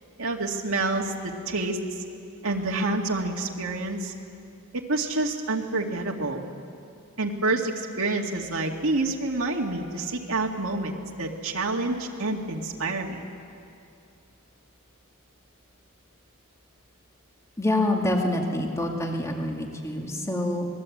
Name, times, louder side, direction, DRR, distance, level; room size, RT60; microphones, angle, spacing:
voice 1, 0.2-1.8 2.4-4.1 4.9-6.4 7.2-13.2, right 2 dB, 70° right, -1 dB, 2.1 m, -28 dB
voice 2, 17.6-20.7, left 1 dB, 15° left, 1 dB, 2.2 m, -26 dB
25.5 x 20.5 x 8.6 m, 2.5 s
head